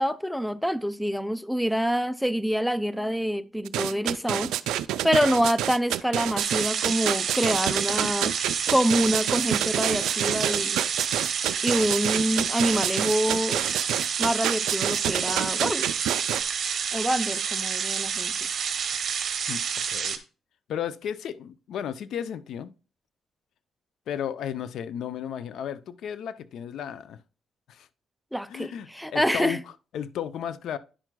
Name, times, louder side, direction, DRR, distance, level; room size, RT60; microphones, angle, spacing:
voice 1, 0.0-4.5 5.0-8.3 8.7-10.8 11.6-13.6 14.2-15.9 16.9-18.5 28.3-29.6, equal, ahead, 0.4 m, -26 dB
sound 1, 3.7-16.4, right 12 dB, 90° right, 0.3 m, -28 dB
sound 2, 6.4-20.2, right 7 dB, 50° right, 0.8 m, -29 dB
voice 2, 19.9-20.2 20.7-22.7 24.1-27.2 27.7-27.9 28.5-29.6 29.9-30.8, left 9 dB, 75° left, 0.4 m, -34 dB
10.0 x 6.0 x 2.2 m
cardioid pair, 90°, 0 cm